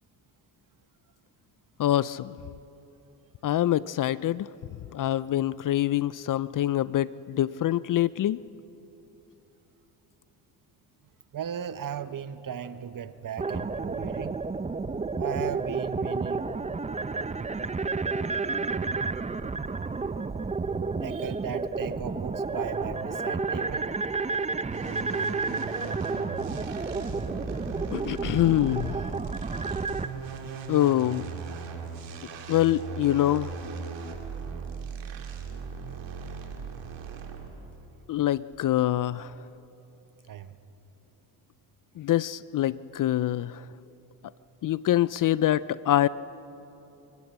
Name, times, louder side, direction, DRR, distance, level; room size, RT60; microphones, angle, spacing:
voice 1, 1.8-2.3 3.4-4.5 4.9-8.4 27.9-28.9 30.7-31.3 32.5-33.5 38.1-39.3 42.0-43.6 44.6-46.1, left 13 dB, 45° left, 19 dB, 0.5 m, -25 dB
voice 2, 11.3-14.4 15.2-16.4 21.0-23.9 40.3-40.6, right 8 dB, 45° right, 12 dB, 1.1 m, -36 dB
sound 1, 13.4-30.1, right 4 dB, 15° right, 0.7 m, -31 dB
sound 2, 24.7-37.7, right 5 dB, 70° right, 2.7 m, -38 dB
24.0 x 14.5 x 8.5 m, 3.0 s
supercardioid pair, 70°, 46 cm